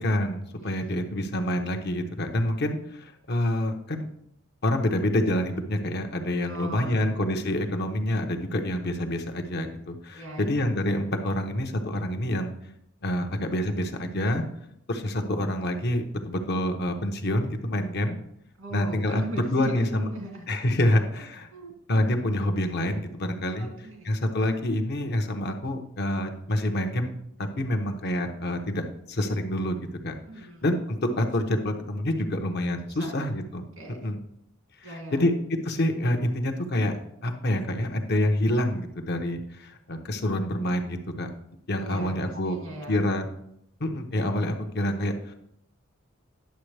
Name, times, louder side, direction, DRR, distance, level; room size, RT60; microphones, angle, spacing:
voice 1, 0.0-4.1 4.6-12.5 13.0-14.4 14.9-18.2 18.7-20.1 20.5-21.5 21.9-23.7 24.0-27.1 27.6-29.8 30.0-33.6 34.0-34.2 34.9-35.3 35.6-41.3 41.7-42.6 42.9-43.2 43.8-45.3, left 1 dB, 55° left, 5 dB, 0.9 m, -27 dB
voice 2, 6.4-7.1 10.1-10.7 18.6-20.5 20.8-21.2 21.5-21.7 23.6-24.1 30.3-30.6 32.9-33.1 33.8-34.1 34.8-35.2 41.8-43.1, right 1 dB, 80° right, 1 dB, 2.3 m, -39 dB
10.5 x 7.0 x 3.3 m, 0.74 s
head